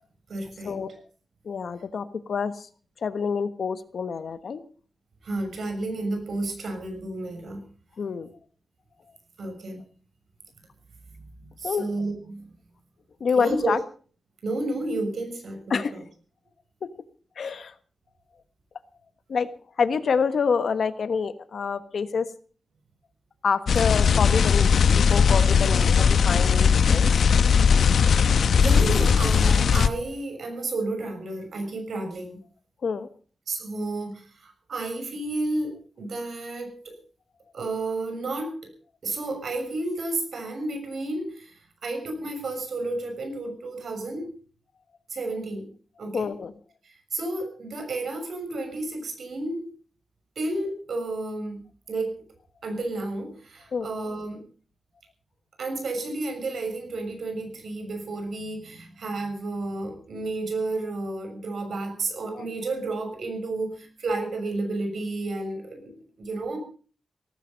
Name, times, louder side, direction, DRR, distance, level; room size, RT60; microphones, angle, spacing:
voice 1, 0.3-0.7 5.2-7.6 9.4-9.8 11.2-12.5 13.4-13.7 14.4-16.0 28.6-32.4 33.5-37.0 37.5-38.7 39.0-41.5 41.8-44.3 45.1-45.7 46.0-46.3 47.1-49.7 50.4-52.2 52.6-54.4 55.6-66.6, right 2 dB, 70° right, 5 dB, 6.5 m, -31 dB
voice 2, 1.4-2.5 3.0-4.6 8.0-8.3 11.6-11.8 13.2-13.8 15.7-15.9 17.4-17.7 19.3-19.5 19.8-22.3 23.4-27.1 32.8-33.1 46.1-46.5 53.7-53.9, left 5 dB, 65° left, 12 dB, 1.3 m, -27 dB
sound 1, 23.7-29.9, left 6 dB, 90° left, 1.1 m, -19 dB
17.5 x 15.5 x 5.3 m, 0.41 s
wide cardioid pair, 160°, 0 cm